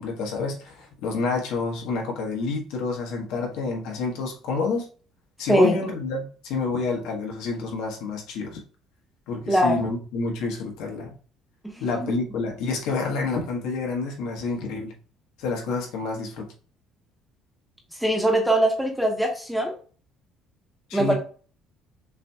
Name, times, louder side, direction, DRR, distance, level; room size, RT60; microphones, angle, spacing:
voice 1, 0.0-4.9 5.4-8.6 9.3-11.2 11.8-14.9 15.4-16.5 20.9-21.2, left 4 dB, 85° left, 1.3 m, -28 dB
voice 2, 5.5-5.8 9.5-9.8 11.6-12.1 18.0-19.7 20.9-21.1, right 1 dB, 5° right, 1.1 m, -22 dB
6.2 x 2.8 x 2.3 m
cardioid pair, 135°, 0 cm